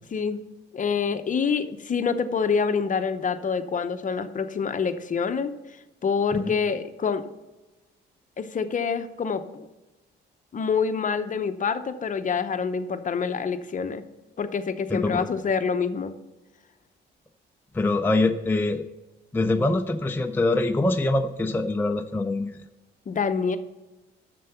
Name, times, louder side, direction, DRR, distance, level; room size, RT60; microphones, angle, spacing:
voice 1, 0.7-5.5 6.0-7.2 8.4-9.7 10.5-14.0 14.4-16.2 23.1-23.6, left 5 dB, 40° left, 10 dB, 0.8 m, -26 dB
voice 2, 17.7-18.8 19.3-22.5, left 2 dB, 10° left, 5 dB, 0.5 m, -24 dB
7.5 x 6.8 x 5.7 m, 1.1 s
cardioid pair, 90°, 20 cm